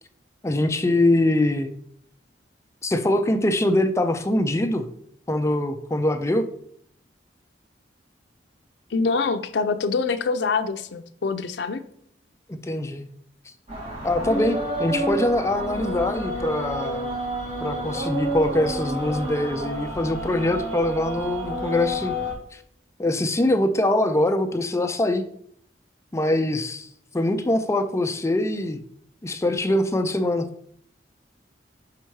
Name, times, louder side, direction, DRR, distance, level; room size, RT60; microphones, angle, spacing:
voice 1, 0.4-1.7 2.8-4.8 5.3-6.5 12.6-13.1 14.0-17.1 17.6-22.2 22.5-22.6 23.0-25.2 26.1-26.9 27.1-28.8 29.2-30.5, left 1 dB, 15° left, 8 dB, 0.4 m, -23 dB
voice 2, 8.9-11.8, left 4 dB, 75° left, 7 dB, 0.5 m, -25 dB
sound 1, 13.7-22.3, right 1 dB, 35° right, 2.3 m, -29 dB
5.8 x 4.5 x 4.6 m, 0.67 s
head